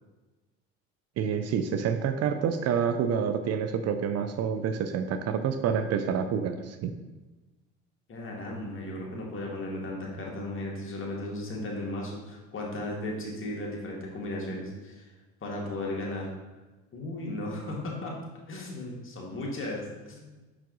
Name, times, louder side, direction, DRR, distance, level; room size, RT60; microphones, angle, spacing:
voice 1, 1.2-6.9, right 7 dB, 55° right, 9 dB, 0.5 m, -28 dB
voice 2, 8.1-15.1 15.4-16.3 16.9-18.1 18.5-20.2, left 1 dB, 40° left, -2 dB, 1.9 m, -35 dB
5.8 x 4.7 x 3.9 m, 1.2 s
supercardioid pair, 80°, 31 cm